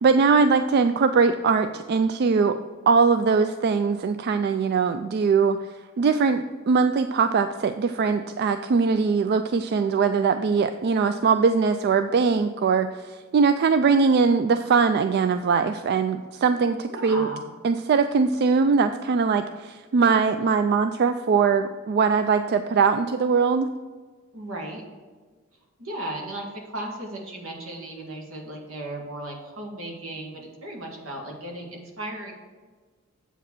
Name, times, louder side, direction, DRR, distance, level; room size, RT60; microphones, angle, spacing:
voice 1, 0.0-2.6 2.9-5.6 6.0-17.3 17.6-23.7, right 5 dB, 50° right, 9 dB, 0.3 m, -21 dB
voice 2, 16.8-17.4 24.3-24.8 25.8-32.3, right 1 dB, 80° right, 1 dB, 1.9 m, -36 dB
7.8 x 4.9 x 6.1 m, 1.5 s
head